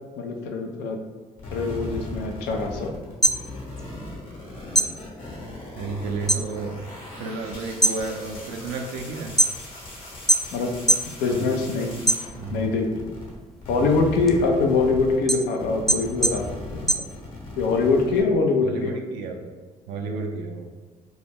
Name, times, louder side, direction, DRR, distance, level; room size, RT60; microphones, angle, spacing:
voice 1, 0.2-1.0 1.5-2.9 10.5-10.8 11.2-12.0 12.5-13.1 13.7-16.9 17.6-19.0, left 3 dB, 70° left, 3 dB, 0.4 m, -23 dB
sound 1, 1.4-13.3 13.6-18.2, left 2 dB, 50° left, 1.0 m, -38 dB
sound 2, 3.0-4.4 4.7-6.5 6.8-7.3 7.7-9.9 10.3-11.1 11.5-12.7 13.1-17.7, right 1 dB, ahead, 0.4 m, -23 dB
voice 2, 5.8-6.7 7.2-9.4 11.3-11.6 12.4-12.7 18.6-19.5 19.9-20.7, right 3 dB, 75° right, 2 dB, 0.4 m, -32 dB
2.2 x 2.1 x 3.3 m, 1.3 s
hypercardioid pair, 55°, 17 cm